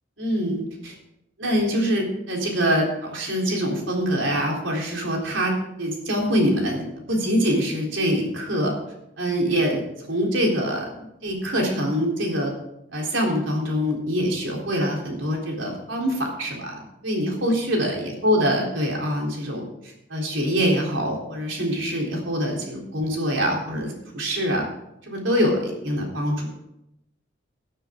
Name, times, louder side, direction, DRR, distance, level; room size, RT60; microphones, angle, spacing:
voice 1, 0.2-0.9 1.4-8.7 9.2-9.8 10.1-10.9 11.2-12.5 12.9-24.6 25.0-26.5, equal, 80° right, -1 dB, 3.7 m, -24 dB
17.0 x 10.0 x 3.8 m, 0.84 s
head